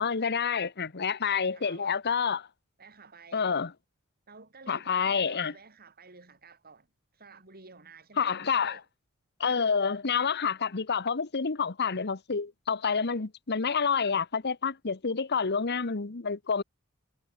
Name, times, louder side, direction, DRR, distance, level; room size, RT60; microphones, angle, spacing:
voice 1, 0.0-2.5 3.3-3.7 4.7-5.5 8.2-8.8 9.4-16.6, left 6 dB, 50° left, 1.1 m, -28 dB
voice 2, 1.5-2.0 2.8-3.5 4.3-6.9 7.1-8.8, right 4 dB, 45° right, 6.2 m, -52 dB
head